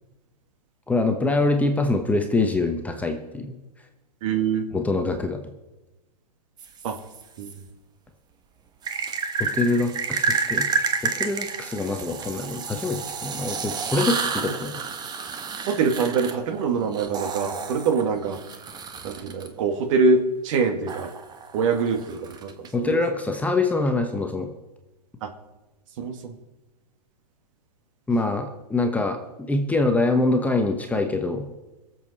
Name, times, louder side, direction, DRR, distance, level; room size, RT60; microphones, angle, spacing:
voice 1, 0.9-3.6 4.7-5.4 9.4-14.8 22.7-24.5 28.1-31.5, left 2 dB, 5° left, 4 dB, 1.1 m, -24 dB
voice 2, 4.2-4.6 6.8-7.0 7.4-7.5 15.7-18.4 19.0-21.1 21.5-23.0 25.2-25.3 26.0-26.4, right 4 dB, 50° right, 6 dB, 2.0 m, -24 dB
sound 1, 6.6-7.5 8.8-19.5 20.9-22.7, right 5 dB, 20° right, 1.2 m, -30 dB
22.5 x 7.7 x 4.2 m, 1.0 s
hypercardioid pair, 125°, 21 cm